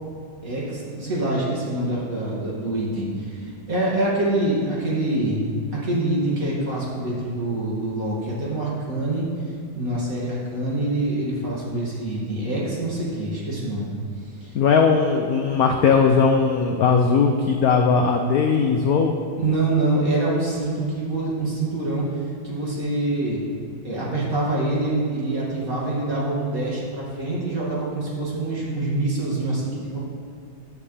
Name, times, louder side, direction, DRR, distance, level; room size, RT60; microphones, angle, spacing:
voice 1, 0.4-9.2 9.7-13.9 14.4-14.5 19.4-23.4 23.8-30.0, right 2 dB, 45° right, -6 dB, 2.7 m, -25 dB
voice 2, 14.5-19.1, left 5 dB, 70° left, 3 dB, 0.9 m, -18 dB
14.5 x 9.4 x 3.3 m, 2.3 s
omnidirectional pair, 2.2 m